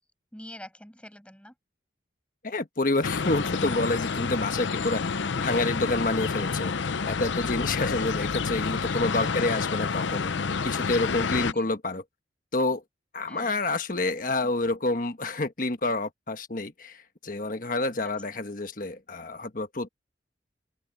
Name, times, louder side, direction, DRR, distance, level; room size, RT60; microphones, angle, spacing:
voice 1, 0.3-1.5 11.5-11.7 13.3-13.6 14.4-14.5, left 1 dB, 5° left, 6.1 m, -46 dB
voice 2, 2.4-5.0 5.3-6.7 7.0-10.3 10.6-12.0 12.5-12.8 13.1-19.9, left 2 dB, 45° left, 1.4 m, -28 dB
sound 1, 3.0-11.5, left 5 dB, 80° left, 0.7 m, -29 dB
open air
head